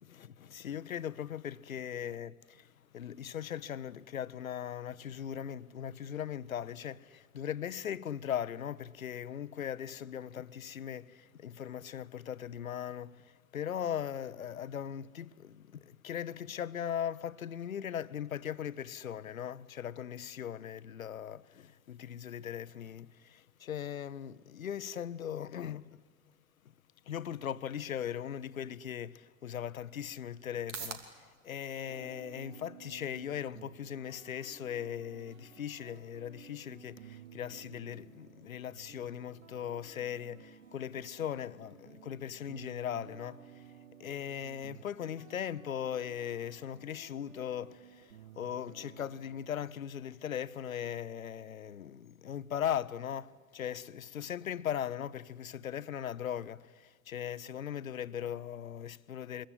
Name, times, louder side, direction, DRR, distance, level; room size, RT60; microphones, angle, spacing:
voice 1, 0.0-26.0 27.0-43.7 44.0-59.5, left 9 dB, 85° left, 0.8 m, -39 dB
sound 1, 29.2-46.2, right 6 dB, 65° right, 3.0 m, -56 dB
sound 2, 31.9-49.5, right 8 dB, 85° right, 1.0 m, -55 dB
26.0 x 22.5 x 9.8 m
figure-of-eight pair, 75°, 40 cm